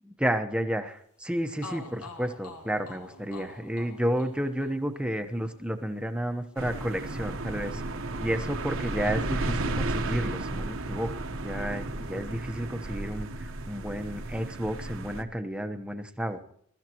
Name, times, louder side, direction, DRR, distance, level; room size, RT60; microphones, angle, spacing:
voice 1, 0.2-7.8 8.2-11.1 11.4-16.5, equal, 5° right, 7 dB, 0.9 m, -31 dB
sound 1, 1.2-1.3 1.6-9.5 9.7-10.9, left 3 dB, 85° left, 2.1 m, -49 dB
sound 2, 6.6-15.2, right 2 dB, 60° right, 1.1 m, -33 dB
23.0 x 13.5 x 3.0 m, 0.66 s
head